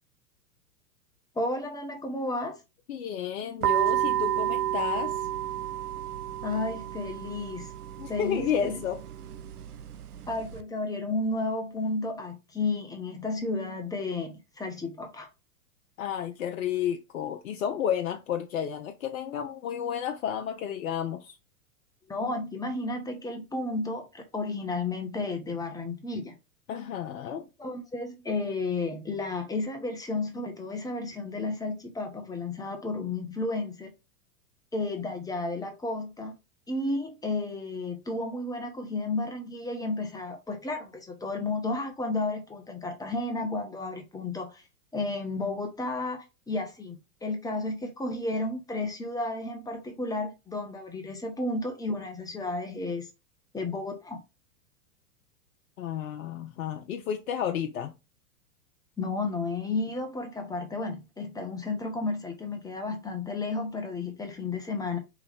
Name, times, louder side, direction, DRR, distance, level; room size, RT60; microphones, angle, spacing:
voice 1, 1.3-2.6 6.4-7.7 8.1-8.8 10.3-15.3 22.1-26.4 27.3-33.9 34.7-36.3 36.7-44.6 44.9-53.1 53.5-54.2 59.0-65.0, left 2 dB, 10° left, 0.9 m, -32 dB
voice 2, 2.9-5.3 8.0-9.0 16.0-21.4 26.7-27.4 55.8-57.9, left 9 dB, 65° left, 0.7 m, -31 dB
sound 1, 3.6-10.6, right 12 dB, 80° right, 0.7 m, -31 dB
4.8 x 3.2 x 3.4 m
hypercardioid pair, 105°, 45 cm